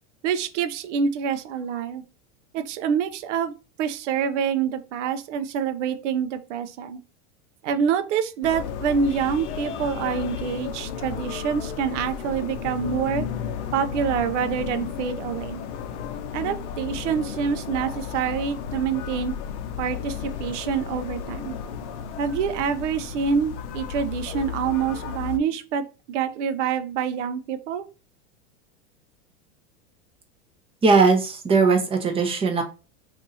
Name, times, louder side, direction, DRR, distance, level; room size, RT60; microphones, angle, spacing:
voice 1, 0.2-2.0 2.5-7.0 7.6-13.3 13.7-15.6 16.3-19.3 19.8-21.6 22.2-27.8, right 7 dB, 75° right, 0.6 m, -26 dB
sound 1, 8.4-25.4, left 8 dB, 70° left, 0.6 m, -33 dB
voice 2, 30.8-32.6, right 4 dB, 15° right, 0.7 m, -19 dB
2.7 x 2.6 x 3.8 m
supercardioid pair, 125°, 36 cm